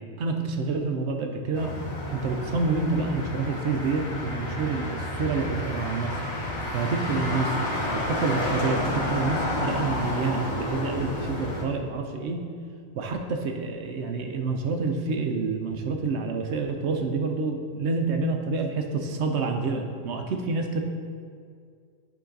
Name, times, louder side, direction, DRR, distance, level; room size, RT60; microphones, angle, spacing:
voice 1, 0.0-6.1 6.7-7.6 7.9-12.5 12.9-20.8, right 3 dB, 65° right, 4 dB, 0.8 m, -28 dB
Motor vehicle (road), 1.5-11.6, left 1 dB, 75° left, 1.5 m, -30 dB
10.5 x 3.9 x 3.8 m, 2.1 s
omnidirectional pair, 1.4 m